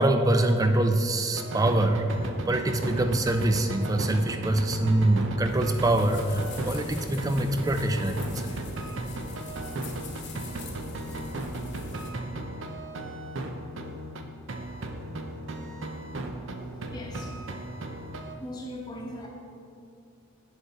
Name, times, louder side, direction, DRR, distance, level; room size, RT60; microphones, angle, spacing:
voice 1, 0.0-2.1 2.5-8.6, right 1 dB, 15° right, 7 dB, 0.3 m, -24 dB
sound 1, 1.3-14.2 14.5-18.3, right 2 dB, 65° right, 0.7 m, -35 dB
sound 2, 5.5-12.1, left 3 dB, 55° left, 1.0 m, -44 dB
voice 2, 16.9-17.3 18.4-19.3, left 1 dB, 20° left, -1 dB, 1.0 m, -38 dB
7.7 x 6.9 x 4.1 m, 2.6 s
head